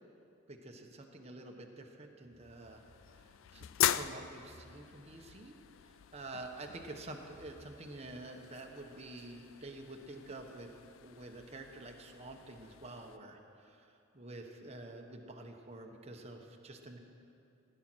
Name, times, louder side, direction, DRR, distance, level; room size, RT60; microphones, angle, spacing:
voice 1, 0.5-2.8 3.1-5.5 6.1-10.7 11.0-17.0, right 2 dB, 30° right, 2 dB, 1.1 m, -48 dB
sound 1, 2.4-13.2, left 11 dB, 75° left, 0.4 m, -41 dB
16.0 x 10.0 x 6.2 m, 2.6 s
head